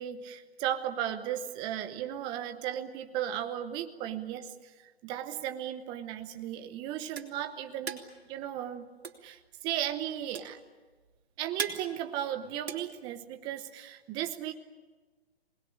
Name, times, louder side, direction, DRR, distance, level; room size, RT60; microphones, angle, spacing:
voice 1, 0.0-8.0 8.2-8.9 9.2-10.6 11.4-14.5, right 11 dB, 15° right, 8 dB, 0.9 m, -36 dB
sound 1, 6.5-13.7, right 6 dB, 75° right, 3.4 m, -41 dB
26.5 x 20.0 x 10.0 m, 1.3 s
hypercardioid pair, 155°, 32 cm